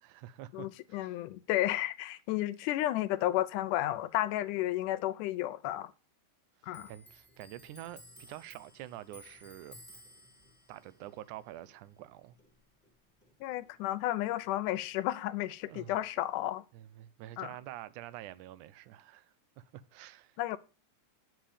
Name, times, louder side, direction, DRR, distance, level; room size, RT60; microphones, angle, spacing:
voice 1, 0.0-1.2 6.6-9.8 10.7-12.4 15.7-16.0 16.7-20.4, right 13 dB, 80° right, 2.1 m, -47 dB
voice 2, 0.5-5.9 6.6-6.9 13.4-16.6 17.4-17.5 20.4-20.6, left 14 dB, 85° left, 2.2 m, -32 dB
Clock, 6.7-13.7 14.0-15.3 15.6-16.4, left 1 dB, 5° left, 1.2 m, -57 dB
9.2 x 7.6 x 5.0 m
omnidirectional pair, 3.6 m